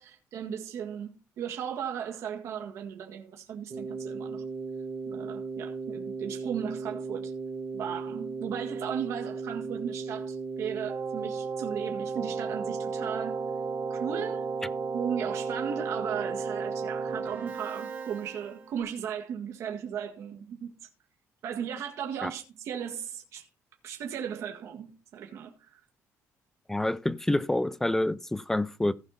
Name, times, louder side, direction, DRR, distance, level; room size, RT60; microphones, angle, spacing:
voice 1, 0.0-4.5 5.1-7.3 7.7-13.5 13.9-14.5 14.9-20.7 21.4-23.5 23.8-25.8, right 8 dB, 65° right, 1.8 m, -36 dB
Keyboard (musical), 3.7-18.8, right 5 dB, 35° right, 4.1 m, -35 dB
voice 2, 26.7-28.9, left 1 dB, 5° left, 0.4 m, -27 dB
16.0 x 5.6 x 4.2 m
cardioid pair, 140°, 5 cm